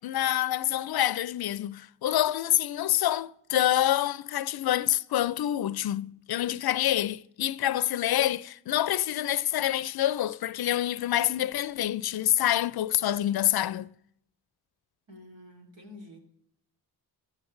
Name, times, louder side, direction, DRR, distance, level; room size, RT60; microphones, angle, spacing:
voice 1, 0.0-13.9, left 12 dB, 60° left, 0.5 m, -27 dB
voice 2, 15.1-16.2, left 1 dB, 80° right, 3.0 m, -48 dB
17.0 x 12.5 x 3.2 m
supercardioid pair, 50°, 43 cm